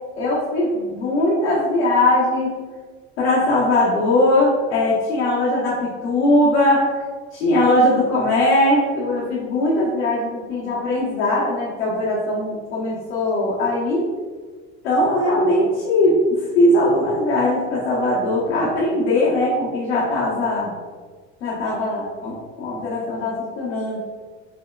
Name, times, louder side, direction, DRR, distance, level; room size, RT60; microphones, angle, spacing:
voice 1, 0.2-2.5 3.2-6.9 7.3-14.1 14.8-20.7 21.4-24.0, left 1 dB, 90° left, -8 dB, 1.2 m, -20 dB
5.7 x 3.0 x 2.3 m, 1.5 s
hypercardioid pair, 80°, 33 cm